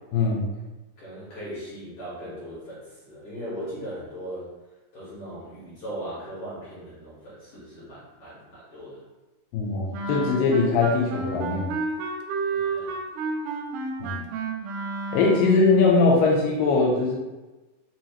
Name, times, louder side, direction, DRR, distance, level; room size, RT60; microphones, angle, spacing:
voice 1, 0.1-0.5 9.5-11.8 14.0-14.2 15.1-17.1, left 4 dB, 85° left, -2 dB, 2.3 m, -21 dB
voice 2, 1.0-4.5 4.9-9.0 12.3-12.9, equal, 55° left, -10 dB, 2.0 m, -38 dB
Wind instrument woodwind instrument, 9.9-15.7, right 4 dB, 85° right, 2.3 m, -31 dB
5.2 x 3.1 x 2.9 m, 1.1 s
omnidirectional pair, 4.1 m